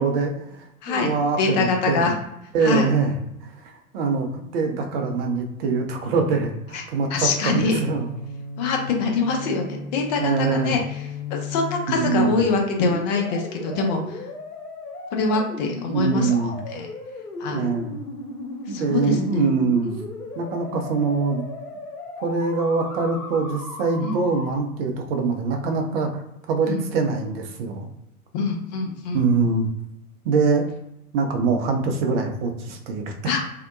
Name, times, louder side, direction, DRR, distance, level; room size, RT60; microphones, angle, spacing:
voice 1, 0.0-2.1 2.5-3.1 3.4-8.1 10.2-10.8 11.9-12.4 15.9-16.5 17.5-18.0 18.7-20.0 20.4-21.5 22.2-26.1 26.5-27.9 29.1-29.7 30.2-30.7 31.1-33.4, right 4 dB, 40° right, 3 dB, 0.5 m, -24 dB
voice 2, 1.4-2.1 2.6-2.9 6.7-6.8 7.1-7.8 8.6-10.8 11.5-14.2 15.1-16.3 16.7-16.9 17.4-17.7 18.7-19.4 24.0-24.1 26.7-26.8 28.3-29.2 33.3-33.4, left 4 dB, 30° left, 2 dB, 0.4 m, -24 dB
sound 1, 7.6-24.6, left 2 dB, 80° left, 0.7 m, -36 dB
2.7 x 2.1 x 2.5 m, 0.84 s
figure-of-eight pair, 90°, 45 cm